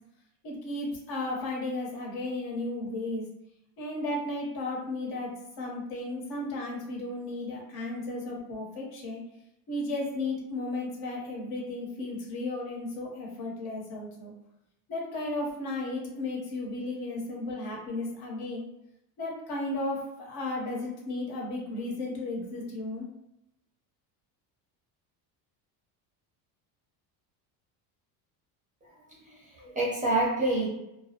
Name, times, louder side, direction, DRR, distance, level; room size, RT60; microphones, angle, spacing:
voice 1, 0.4-3.3 3.8-9.2 9.7-14.3 14.9-18.7 19.2-23.1, left 2 dB, 55° left, -2 dB, 0.9 m, -34 dB
voice 2, 28.8-30.7, right 2 dB, 20° right, -5 dB, 0.5 m, -28 dB
2.2 x 2.0 x 2.8 m, 0.87 s
cardioid pair, 130°, 44 cm